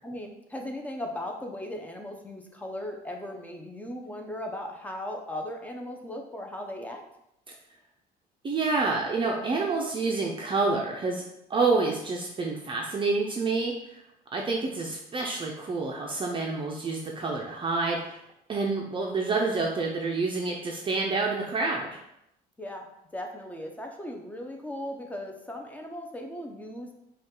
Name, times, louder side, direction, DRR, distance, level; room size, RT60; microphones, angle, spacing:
voice 1, 0.0-7.0 22.6-22.9 23.1-26.9, left 1 dB, 10° left, 2 dB, 0.7 m, -37 dB
voice 2, 8.4-11.2 11.5-14.0 14.3-18.2 18.5-22.0, right 3 dB, 30° right, -1 dB, 0.6 m, -28 dB
5.2 x 2.4 x 3.7 m, 0.81 s
cardioid pair, 110°, 17 cm